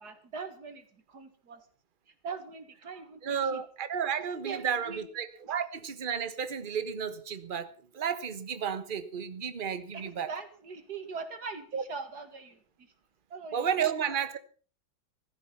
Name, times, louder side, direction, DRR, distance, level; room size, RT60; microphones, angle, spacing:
voice 1, 0.0-1.6 2.2-3.6 4.4-5.1 5.4-5.5 9.9-12.9 13.3-14.2, right 5 dB, 50° right, 9 dB, 2.4 m, -42 dB
voice 2, 3.2-10.3 11.7-11.8 13.5-14.4, right 7 dB, 30° right, 12 dB, 1.1 m, -32 dB
15.5 x 13.5 x 5.7 m, 0.39 s
omnidirectional pair, 2.2 m